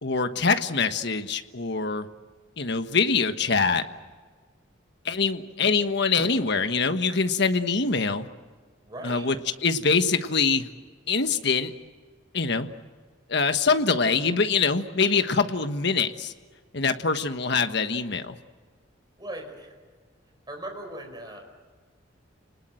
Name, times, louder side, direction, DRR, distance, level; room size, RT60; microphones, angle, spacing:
voice 1, 0.0-2.1 2.6-3.8 5.0-8.3 9.0-9.3 9.6-10.7 11.1-11.7 12.3-12.7 13.3-16.3 16.7-18.4, left 4 dB, 60° left, 8 dB, 1.4 m, -24 dB
voice 2, 8.8-9.3 19.2-19.7 20.5-21.4, right 1 dB, 20° right, 3 dB, 4.6 m, -38 dB
30.0 x 20.0 x 7.7 m, 1.5 s
head